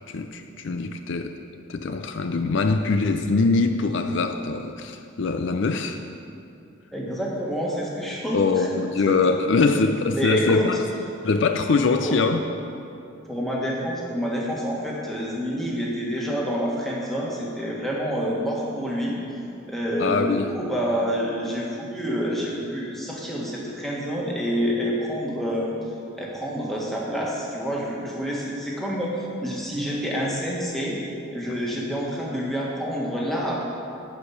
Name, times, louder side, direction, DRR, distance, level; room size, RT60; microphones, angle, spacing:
voice 1, 0.1-1.4 1.7-6.0 8.3-10.8 11.2-12.4 20.0-20.5, left 4 dB, 60° left, 7 dB, 0.4 m, -23 dB
voice 2, 6.9-9.2 10.1-10.7 12.0-12.2 13.2-19.2 19.7-25.7 26.2-31.0 31.3-33.7, equal, ahead, -5 dB, 1.6 m, -28 dB
11.5 x 4.9 x 8.5 m, 2.6 s
head